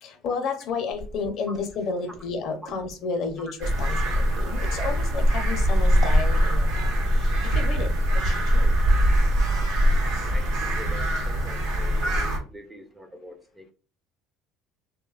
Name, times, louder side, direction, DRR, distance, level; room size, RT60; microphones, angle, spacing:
voice 1, 0.0-7.9 8.2-8.7, left 4 dB, 55° left, 0.5 m, -32 dB
Walk footsteps, 0.9-6.2, right 2 dB, 50° right, 0.8 m, -43 dB
sound 1, 3.6-12.4, equal, 75° right, 0.8 m, -22 dB
voice 2, 10.2-13.7, equal, 5° right, 0.3 m, -44 dB
2.7 x 2.1 x 2.3 m
cardioid pair, 125°, 0 cm